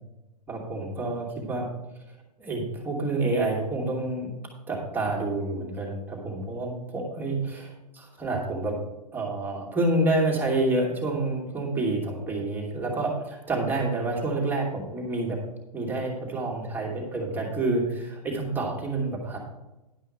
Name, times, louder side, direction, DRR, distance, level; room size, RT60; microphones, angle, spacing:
voice 1, 0.5-1.7 2.4-4.4 4.7-8.8 9.1-15.4 15.7-19.4, right 2 dB, 10° right, -3 dB, 2.5 m, -28 dB
11.0 x 5.5 x 6.6 m, 0.98 s
hypercardioid pair, 125°, 21 cm